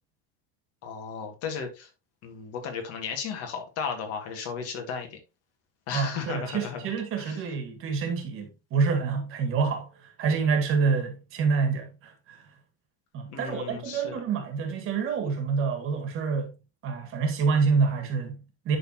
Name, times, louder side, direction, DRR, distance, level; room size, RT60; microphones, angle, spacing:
voice 1, 0.8-1.9 2.2-5.2 5.9-6.9 7.2-7.4 13.3-14.2, left 6 dB, 50° left, 2.2 m, -35 dB
voice 2, 5.9-12.4 13.1-16.5 16.8-18.8, right 5 dB, 40° right, 2.0 m, -27 dB
11.0 x 4.0 x 3.0 m
cardioid pair, 155°, 32 cm